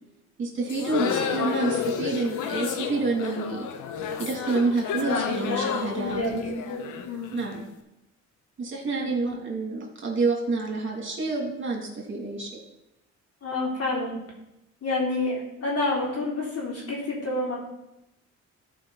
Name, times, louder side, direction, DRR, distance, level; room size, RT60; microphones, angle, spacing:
voice 1, 0.4-3.7 4.2-6.2 7.3-7.6 8.6-12.5, right 3 dB, 40° right, -1 dB, 2.8 m, -28 dB
sound 1, 0.7-7.6, left 7 dB, 85° left, 0.9 m, -31 dB
voice 2, 5.0-7.3 9.0-9.4 13.4-14.2 14.8-17.6, left 2 dB, 55° left, -3 dB, 3.6 m, -29 dB
13.0 x 5.0 x 4.1 m, 0.91 s
cardioid pair, 90°, 30 cm